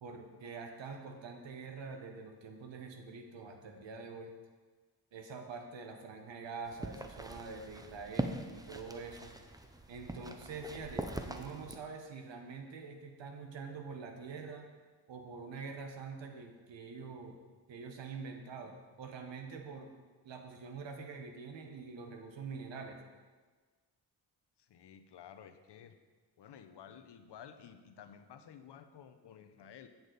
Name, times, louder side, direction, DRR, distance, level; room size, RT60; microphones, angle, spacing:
voice 1, 0.0-4.3 5.1-9.3 9.9-14.6 15.1-17.3 17.7-19.9 20.2-23.0, right 4 dB, 85° right, 4 dB, 1.1 m, -45 dB
sound 1, 6.7-11.8, right 1 dB, 10° right, 0.6 m, -42 dB
voice 2, 24.6-26.0 26.4-29.9, left 8 dB, 70° left, 8 dB, 0.7 m, -53 dB
8.0 x 7.1 x 3.9 m, 1.4 s
cardioid pair, 75°, 43 cm